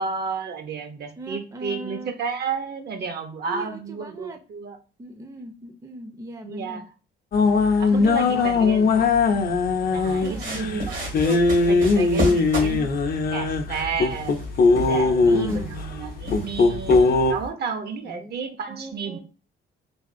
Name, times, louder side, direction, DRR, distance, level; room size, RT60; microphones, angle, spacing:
voice 1, 0.0-4.8 6.4-6.8 7.8-8.9 9.9-11.0 11.2-12.9 13.3-14.4 14.8-19.2, right 5 dB, 55° right, 6 dB, 0.6 m, -32 dB
voice 2, 1.2-2.1 3.5-4.4 5.0-6.9 7.9-9.0 10.2-11.0 15.2-15.7 18.0-19.2, right 1 dB, 15° right, 5 dB, 0.5 m, -38 dB
sound 1, 7.3-17.3, left 4 dB, 50° left, 0.5 m, -21 dB
sound 2, 10.0-17.5, equal, 80° right, 1.7 m, -33 dB
3.4 x 2.4 x 2.5 m, 0.35 s
cardioid pair, 90°, 20 cm